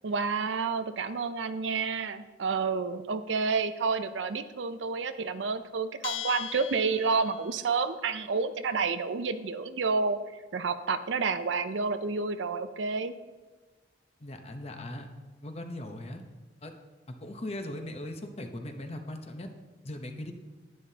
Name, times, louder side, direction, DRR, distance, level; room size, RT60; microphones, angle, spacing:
voice 1, 0.0-10.2 10.5-13.1, right 4 dB, 80° right, 11 dB, 0.5 m, -29 dB
Bell, 6.0-7.6, left 10 dB, 75° left, 0.3 m, -39 dB
voice 2, 14.2-15.1 15.4-16.2 16.6-16.7 17.1-19.5 19.8-20.3, left 1 dB, 35° left, 5 dB, 0.8 m, -39 dB
11.0 x 10.0 x 2.8 m, 1.3 s
head